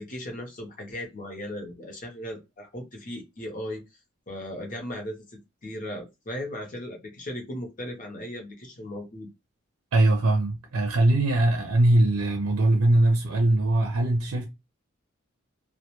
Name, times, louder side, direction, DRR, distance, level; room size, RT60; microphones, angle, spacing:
voice 1, 0.0-3.8 4.3-9.3, left 1 dB, 35° left, 0.7 m, -37 dB
voice 2, 9.9-14.5, right 1 dB, 90° right, 0.5 m, -21 dB
2.2 x 2.1 x 2.8 m
head